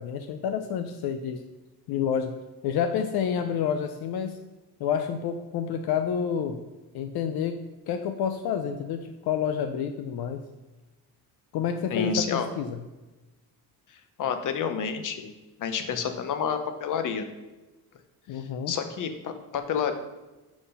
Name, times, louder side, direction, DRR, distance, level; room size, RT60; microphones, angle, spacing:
voice 1, 0.0-1.4 1.9-2.4 2.6-4.4 4.8-6.6 6.9-10.4 11.5-12.8 18.3-18.7, left 7 dB, 80° left, 8 dB, 0.6 m, -29 dB
voice 2, 11.9-12.5 14.2-15.3 15.6-17.3 18.7-19.9, left 7 dB, 55° left, 8 dB, 0.9 m, -29 dB
6.2 x 5.8 x 5.5 m, 1.1 s
cardioid pair, 155°, 37 cm